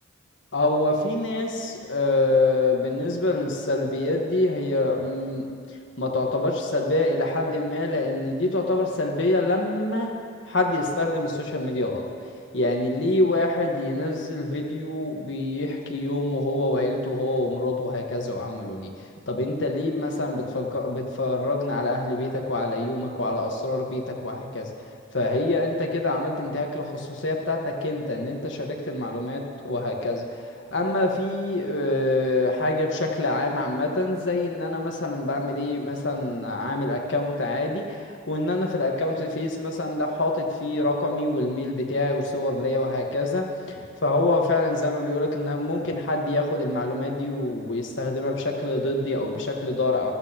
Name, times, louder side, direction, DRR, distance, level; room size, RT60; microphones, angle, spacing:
voice 1, 0.5-5.5 6.0-10.1 10.5-12.1 12.5-18.9 19.3-24.7 25.1-50.1, left 2 dB, 65° left, 1 dB, 1.3 m, -26 dB
14.0 x 13.5 x 2.9 m, 2.4 s
head